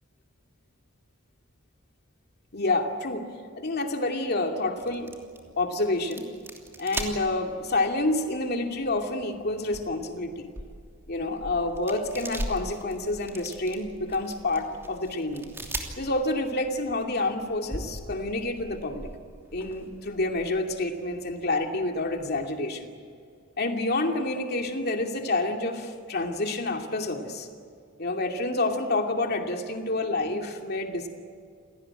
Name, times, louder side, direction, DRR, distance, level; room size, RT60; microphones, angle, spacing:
voice 1, 2.5-3.3 3.6-5.1 5.6-6.2 6.8-10.5 11.1-15.5 16.0-19.1 19.5-22.9 23.6-27.5 28.0-31.1, left 2 dB, 50° left, 3 dB, 2.6 m, -28 dB
sound 1, 4.8-22.5, right 1 dB, 10° right, 3.0 m, -41 dB
28.5 x 18.0 x 8.9 m, 2.2 s
head